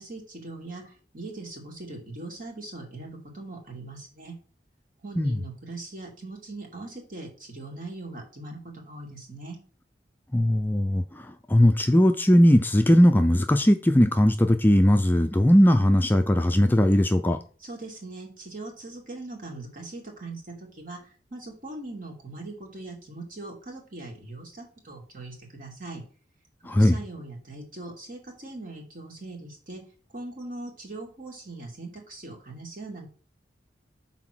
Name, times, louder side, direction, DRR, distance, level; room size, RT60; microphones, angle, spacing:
voice 1, 0.0-3.1 3.3-4.3 5.0-9.6 17.6-21.0 21.3-26.0 26.7-29.8 30.1-33.1, right 2 dB, 50° right, 2.4 m, -40 dB
voice 2, 10.3-17.4 26.6-27.0, equal, 10° left, 0.4 m, -19 dB
6.0 x 4.2 x 6.2 m
head